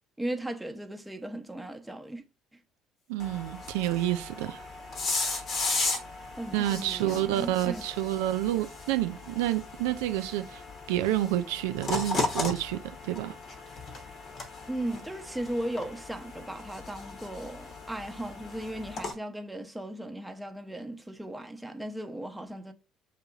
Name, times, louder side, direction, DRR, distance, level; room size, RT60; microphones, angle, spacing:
voice 1, 0.2-2.2 2.5-2.6 6.4-7.8 14.7-22.7, right 1 dB, 5° right, 0.8 m, -37 dB
voice 2, 3.1-4.6 6.5-10.6 10.9-13.3, right 14 dB, 70° right, 0.4 m, -29 dB
sound 1, 3.2-19.1, left 3 dB, 45° left, 1.0 m, -36 dB
7.2 x 2.8 x 2.4 m
figure-of-eight pair, 55°, 0 cm